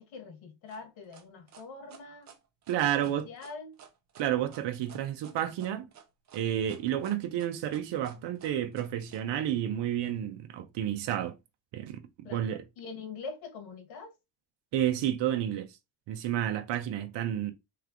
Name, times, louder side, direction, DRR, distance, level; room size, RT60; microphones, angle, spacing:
voice 1, 0.0-2.4 3.0-3.8 12.2-14.1, left 4 dB, 80° left, 1.6 m, -44 dB
sound 1, 0.7-9.2, right 7 dB, 40° right, 0.8 m, -54 dB
voice 2, 2.7-3.3 4.2-5.9 6.3-11.3 11.7-12.6 14.7-15.8 16.1-17.5, right 11 dB, 65° right, 0.7 m, -31 dB
3.3 x 3.3 x 3.6 m
cardioid pair, 165°, 46 cm